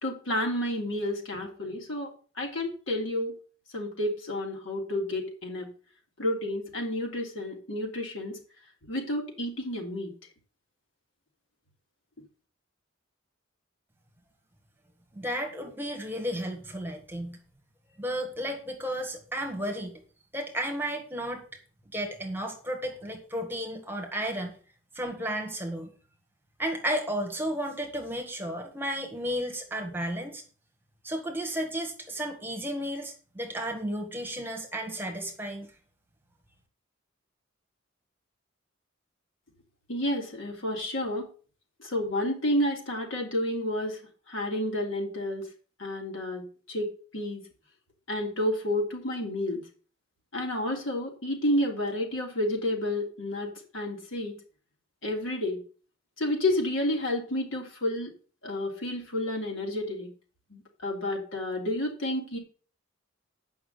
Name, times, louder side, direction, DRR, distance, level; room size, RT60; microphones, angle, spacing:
voice 1, 0.0-2.1 2.4-3.3 3.7-5.7 6.2-8.4 8.9-10.1 39.9-41.2 41.8-44.0 44.3-45.5 45.8-46.4 46.7-47.4 48.1-49.6 50.3-54.3 55.0-55.6 56.2-58.1 58.4-60.1 60.5-62.4, left 1 dB, 75° left, 0 dB, 3.1 m, -30 dB
voice 2, 15.1-17.4 18.0-20.0 20.3-21.4 21.9-24.5 24.9-25.9 26.6-30.4 31.0-35.7, equal, 10° right, 2 dB, 1.6 m, -33 dB
8.5 x 5.8 x 7.0 m, 0.39 s
head